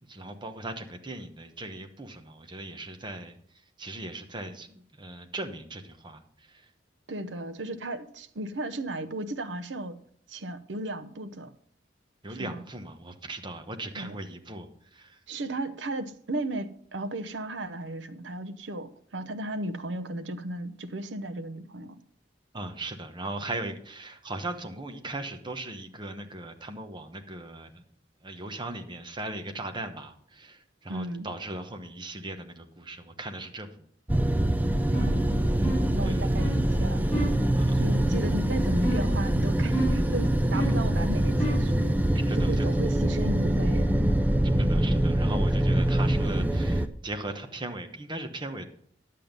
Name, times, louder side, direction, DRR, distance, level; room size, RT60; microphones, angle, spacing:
voice 1, 0.1-3.4 3.8-6.7 12.2-15.2 22.5-27.8 28.2-33.8 36.0-36.3 37.5-37.8 42.3-42.7 44.6-48.6, right 2 dB, 25° right, 1.0 m, -38 dB
voice 2, 7.1-10.0 10.3-11.5 12.3-12.6 13.9-14.2 15.3-22.0 30.9-31.3 34.9-35.4 35.9-37.1 37.7-41.9 42.4-44.0, right 1 dB, 80° right, 0.8 m, -35 dB
sound 1, 34.1-46.9, right 1 dB, 10° right, 0.5 m, -24 dB
sound 2, 34.9-35.2 35.6-36.0 36.4-36.6 37.1-37.4 38.8-39.2 39.7-40.1 40.5-40.9 41.4-41.7, right 1 dB, 10° left, 4.8 m, -31 dB
10.5 x 7.6 x 5.3 m
head